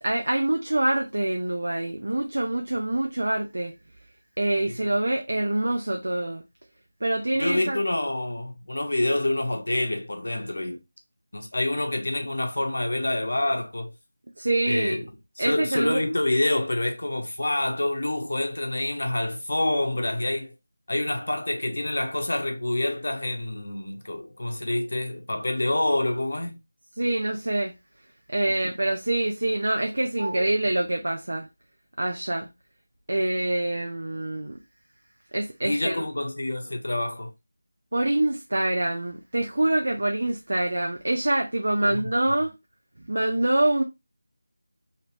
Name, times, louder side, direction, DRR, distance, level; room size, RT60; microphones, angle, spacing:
voice 1, 0.0-3.7 4.4-6.4 7.0-7.8 14.4-15.0 15.4-16.0 27.0-27.8 28.3-31.5 32.0-32.5 33.1-34.6 35.3-36.0 37.9-42.5 43.1-43.8, right 1 dB, 70° right, 0.6 m, -25 dB
voice 2, 7.4-10.8 11.3-13.9 14.7-15.0 15.4-20.5 20.9-26.6 35.6-37.3 41.8-42.0, left 1 dB, 70° left, 0.7 m, -27 dB
3.2 x 2.9 x 2.9 m
figure-of-eight pair, 175°, 0 cm